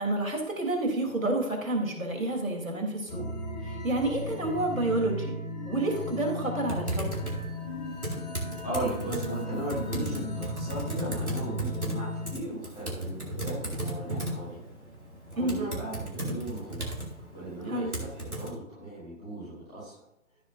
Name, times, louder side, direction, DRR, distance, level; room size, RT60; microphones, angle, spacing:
voice 1, 0.0-3.2 3.6-5.3 5.6-7.2 15.4-15.7 17.7-17.9, right 2 dB, 70° right, 2 dB, 3.6 m, -29 dB
sound 1, 3.1-12.3, left 1 dB, 30° left, 1.3 m, -36 dB
Typing, 6.7-18.5, right 1 dB, 90° right, 3.6 m, -36 dB
voice 2, 8.6-14.6 15.3-20.0, right 1 dB, 5° left, -11 dB, 0.7 m, -37 dB
15.0 x 7.1 x 2.7 m, 0.87 s
figure-of-eight pair, 145°, 42 cm